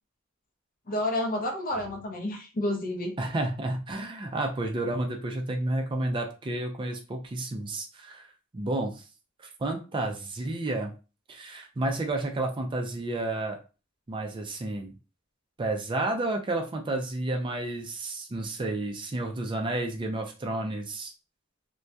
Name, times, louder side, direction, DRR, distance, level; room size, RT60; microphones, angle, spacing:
voice 1, 0.9-3.2, left 1 dB, 45° left, 3 dB, 0.6 m, -30 dB
voice 2, 3.2-9.0 9.4-10.9 11.3-13.6 14.1-14.9 15.6-21.1, right 2 dB, 25° right, 3 dB, 0.4 m, -31 dB
2.6 x 2.2 x 2.2 m, 0.33 s
head